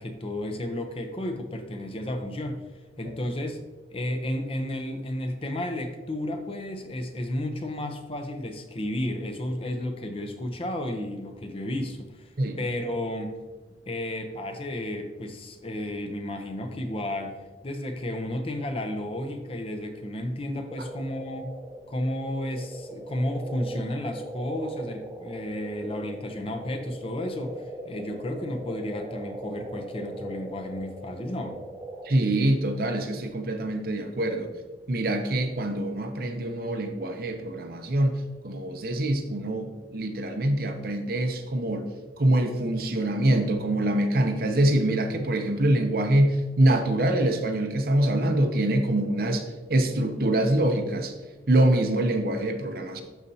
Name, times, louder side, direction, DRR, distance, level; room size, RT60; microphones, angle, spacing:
voice 1, 0.0-2.6 3.0-3.6 3.9-12.3 12.6-13.4 13.9-17.4 17.6-21.5 21.9-31.6, left 1 dB, 30° left, 5 dB, 0.7 m, -32 dB
sound 1, 20.7-32.1, right 1 dB, 15° right, 0.7 m, -40 dB
voice 2, 32.0-34.5 34.9-41.9 42.2-51.1 51.5-53.0, right 1 dB, 55° right, 6 dB, 0.7 m, -24 dB
11.5 x 4.2 x 2.8 m, 1.2 s
head